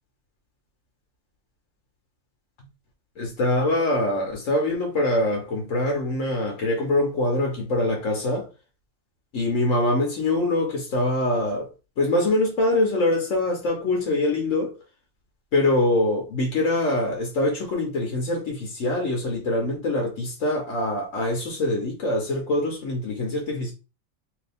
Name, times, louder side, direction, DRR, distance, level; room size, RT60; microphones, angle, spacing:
voice 1, 3.2-8.5 9.3-11.7 12.0-14.7 15.5-23.7, left 1 dB, 75° left, 1.4 m, -24 dB
3.3 x 2.9 x 3.4 m
omnidirectional pair, 1.3 m